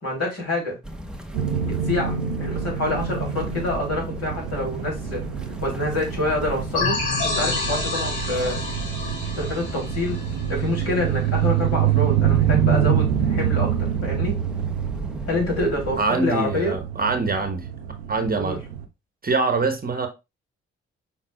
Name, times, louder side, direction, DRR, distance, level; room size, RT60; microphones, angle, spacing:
voice 1, 0.0-0.8 1.6-5.2 5.6-8.6 9.4-10.2 10.5-14.4 15.3-16.7 18.3-18.6, left 1 dB, 55° left, 3.0 m, -27 dB
sound 1, 0.8-16.0, right 1 dB, 5° right, 0.8 m, -35 dB
sound 2, 1.3-18.8, right 9 dB, 90° right, 0.5 m, -26 dB
sound 3, 6.7-11.2, left 3 dB, 70° left, 1.5 m, -29 dB
voice 2, 16.0-17.7 18.1-18.6 19.2-20.1, right 3 dB, 30° right, 1.0 m, -24 dB
5.9 x 3.6 x 2.3 m
hypercardioid pair, 40°, 30 cm